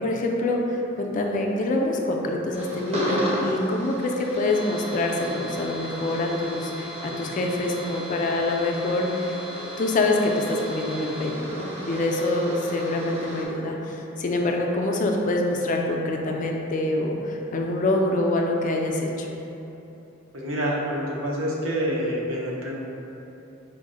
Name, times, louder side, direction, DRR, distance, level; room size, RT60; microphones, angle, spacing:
voice 1, 0.0-9.4 9.8-19.3, left 2 dB, 40° left, 1 dB, 0.3 m, -25 dB
sound 1, 2.5-13.5, equal, 30° right, 0.6 m, -34 dB
voice 2, 20.3-22.7, equal, 75° right, -3 dB, 0.7 m, -27 dB
4.5 x 2.0 x 3.7 m, 3.0 s
head